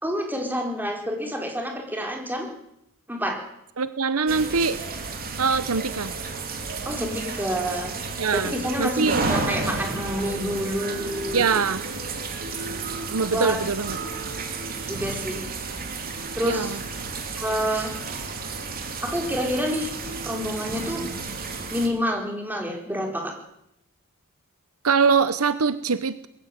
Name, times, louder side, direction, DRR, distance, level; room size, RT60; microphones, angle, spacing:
voice 1, 0.0-2.5 3.1-3.4 6.8-7.9 8.3-11.6 13.3-13.6 14.9-15.4 16.3-16.7 17.4-17.9 19.0-19.9 20.2-21.0 21.7-23.3, equal, 10° right, 2 dB, 4.5 m, -28 dB
voice 2, 3.8-4.8 5.4-6.1 8.2-8.5 8.8-9.2 11.3-11.8 13.1-14.0 16.4-16.8 24.8-26.3, right 5 dB, 70° right, 14 dB, 0.9 m, -23 dB
sound 1, 4.3-21.9, right 4 dB, 40° right, 3.1 m, -32 dB
21.0 x 15.5 x 9.3 m, 0.79 s
head